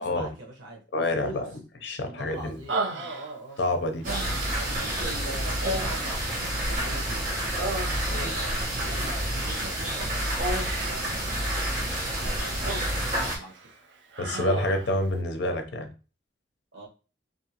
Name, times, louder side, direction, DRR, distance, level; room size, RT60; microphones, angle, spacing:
voice 1, 0.0-0.8 1.1-1.4 2.0-3.6 4.1-4.2 4.5-7.2 8.1-10.2 10.8-11.3 11.8-13.7 16.7-16.9, right 2 dB, 90° right, 0 dB, 1.0 m, -42 dB
voice 2, 0.9-2.6 3.6-4.1 8.1-8.3 14.2-15.9, left 1 dB, 65° left, 6 dB, 0.5 m, -28 dB
Human voice, 2.7-3.6 4.0-4.8 5.6-7.0 7.3-8.4 10.4-11.1 12.1-13.1 13.5-13.7 14.1-14.9, right 2 dB, 70° right, 0.5 m, -33 dB
sound 1, 4.0-13.4, right 1 dB, 45° right, 1.0 m, -29 dB
2.6 x 2.4 x 2.8 m, 0.33 s
head